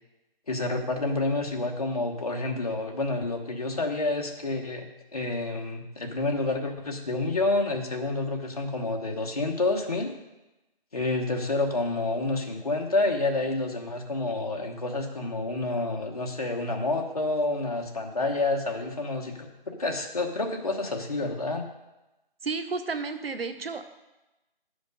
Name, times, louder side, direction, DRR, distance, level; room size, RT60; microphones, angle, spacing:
voice 1, 0.5-4.9 5.1-10.1 10.9-21.6, left 2 dB, 40° left, 2 dB, 1.1 m, -29 dB
voice 2, 22.4-23.9, right 4 dB, 80° right, 9 dB, 1.0 m, -32 dB
10.5 x 5.1 x 5.3 m, 1.0 s
figure-of-eight pair, 180°, 29 cm